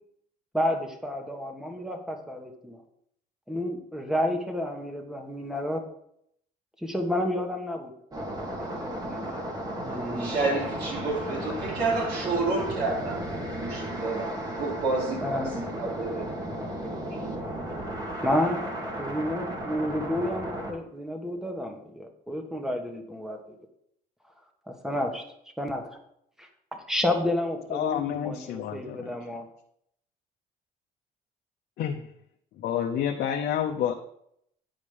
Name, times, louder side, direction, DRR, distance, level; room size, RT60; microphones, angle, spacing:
voice 1, 0.5-2.8 3.5-5.8 6.8-7.9 8.4-9.4 9.8-10.4 12.3-12.4 15.2-15.5 18.2-18.6 19.0-23.4 24.7-25.2 25.6-26.0 26.4-26.5 26.9-29.5, left 1 dB, 5° right, 1.5 m, -30 dB
sound 1, 8.1-20.7, right 1 dB, 20° right, 2.0 m, -34 dB
voice 2, 10.1-16.3 17.2-17.3, right 3 dB, 75° right, 3.4 m, -30 dB
voice 3, 27.7-29.1 31.8-32.1 32.6-33.9, left 9 dB, 70° left, 0.8 m, -29 dB
9.6 x 5.2 x 5.2 m
cardioid pair, 110°, 17 cm